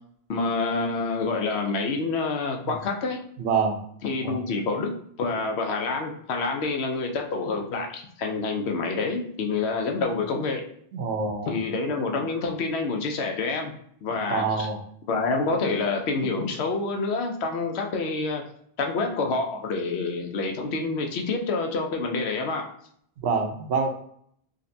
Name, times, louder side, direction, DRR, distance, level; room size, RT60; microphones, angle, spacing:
voice 1, 0.3-3.2 4.0-10.7 11.5-13.7 14.0-14.7 15.1-18.4 18.8-22.7, left 3 dB, 75° left, 2 dB, 0.9 m, -27 dB
voice 2, 3.4-3.8 4.2-4.4 10.9-11.5 14.3-14.8 23.2-23.9, right 5 dB, 75° right, 4 dB, 0.9 m, -26 dB
5.0 x 2.2 x 2.7 m, 0.66 s
omnidirectional pair, 1.1 m